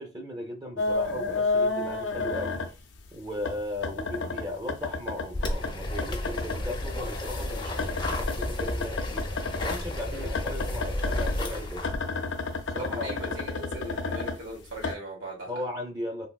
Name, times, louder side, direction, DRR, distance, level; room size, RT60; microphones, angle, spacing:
voice 1, 0.0-2.6 3.1-9.3 9.6-11.9 12.7-13.4 15.5-16.3, left 1 dB, 20° right, 0.5 m, -37 dB
sound 1, 0.8-3.1 3.4-6.6 6.9-9.8 10.3-14.9, left 3 dB, 85° left, 0.5 m, -31 dB
sound 2, 5.3-12.0, left 1 dB, 25° left, 0.5 m, -32 dB
voice 2, 12.8-15.6, right 1 dB, 90° right, 1.8 m, -39 dB
3.4 x 2.7 x 2.3 m
head